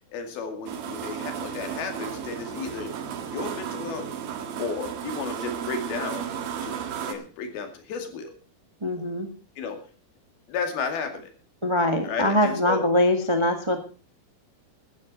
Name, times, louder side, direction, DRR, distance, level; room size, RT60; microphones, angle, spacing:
voice 1, 0.1-2.9 3.2-4.1 4.6-6.3 6.6-6.8 7.1-8.3 9.6-9.8 10.5-11.3 12.0-12.8, left 5 dB, 90° left, 5 dB, 4.2 m, -33 dB
sound 1, 0.7-7.1, right 8 dB, 75° right, 3.5 m, -34 dB
voice 2, 8.8-9.3 11.6-13.8, left 1 dB, 45° right, 5 dB, 0.3 m, -23 dB
15.5 x 13.0 x 4.1 m, 0.35 s
omnidirectional pair, 4.2 m